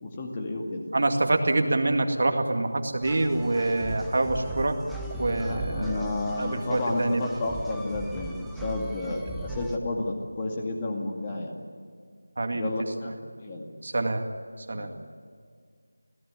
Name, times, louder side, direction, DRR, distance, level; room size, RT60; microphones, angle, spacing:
voice 1, 0.0-0.8 5.3-11.5 12.5-13.7 14.7-14.9, left 2 dB, 20° left, 1 dB, 2.1 m, -31 dB
voice 2, 0.9-4.8 5.2-6.0 6.4-7.3 12.4-12.7 13.8-14.3 14.7-14.9, right 2 dB, 45° right, 5 dB, 2.1 m, -26 dB
sound 1, 3.0-9.8, right 1 dB, ahead, 0.7 m, -38 dB
27.5 x 17.0 x 9.8 m, 2.1 s
figure-of-eight pair, 175°, 0 cm